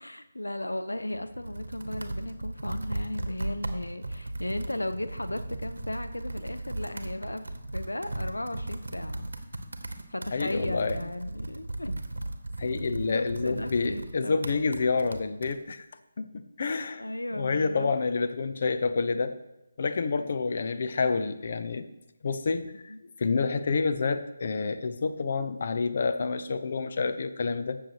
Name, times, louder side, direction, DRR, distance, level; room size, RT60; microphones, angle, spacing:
voice 1, 0.0-9.3 10.1-12.0 12.6-12.7 13.0-14.7 16.9-17.9 22.9-23.0, left 1 dB, 80° left, 9 dB, 0.7 m, -36 dB
Computer keyboard, 0.9-15.6, right 2 dB, 70° right, 1.0 m, -37 dB
voice 2, 10.3-11.0 12.6-15.9 16.2-17.0 17.3-19.3 19.8-21.9 22.2-22.7 23.2-27.8, left 4 dB, 45° left, 10 dB, 0.6 m, -28 dB
15.0 x 6.6 x 2.9 m, 0.94 s
figure-of-eight pair, 150°, 0 cm